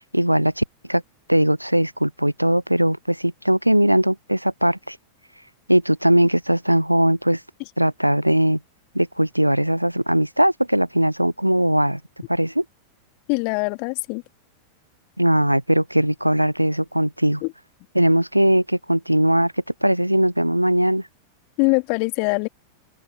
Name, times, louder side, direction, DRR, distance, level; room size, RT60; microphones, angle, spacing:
voice 1, 0.1-0.6 0.9-1.0 1.3-5.0 5.7-7.4 7.8-8.6 8.9-12.0 12.3-12.6 15.2-17.4 17.9-19.5 19.8-21.0, right 1 dB, 90° right, 0.4 m, -19 dB
voice 2, 13.3-14.2 17.4-17.5 21.6-22.5, left 40 dB or more, 45° left, 2.9 m, -22 dB
open air
figure-of-eight pair, 90°, 0 cm